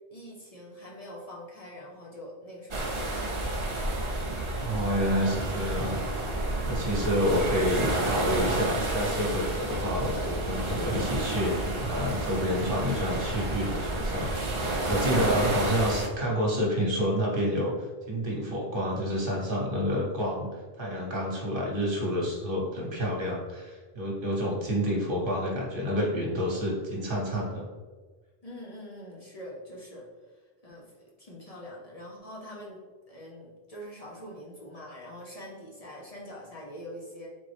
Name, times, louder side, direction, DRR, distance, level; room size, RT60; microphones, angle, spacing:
voice 1, 0.1-3.7 6.5-6.9 28.4-30.9 31.2-32.8 33.1-37.3, equal, 40° left, -4 dB, 0.8 m, -44 dB
sound 1, 2.7-16.1, right 2 dB, 35° right, 0.7 m, -30 dB
voice 2, 4.6-6.0 6.7-17.7 18.1-20.5 20.8-27.6, equal, 60° right, -3 dB, 1.2 m, -29 dB
3.7 x 3.7 x 3.3 m, 1.4 s
omnidirectional pair, 1.0 m